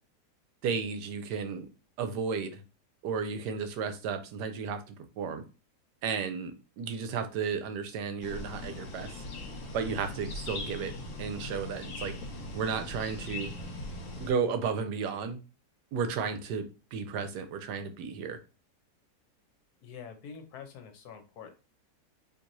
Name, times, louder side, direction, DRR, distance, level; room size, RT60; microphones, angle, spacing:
voice 1, 0.6-1.7 2.0-2.6 3.0-5.4 6.0-9.2 9.7-10.9 11.2-12.1 12.5-13.5 14.2-15.4 15.9-18.4, right 6 dB, 80° right, 9 dB, 1.2 m, -33 dB
sound 1, 8.2-14.3, left 2 dB, 50° left, 1.5 m, -40 dB
voice 2, 19.8-21.5, left 7 dB, 70° left, 6 dB, 1.2 m, -46 dB
4.5 x 2.9 x 2.6 m, 0.32 s
omnidirectional pair, 1.9 m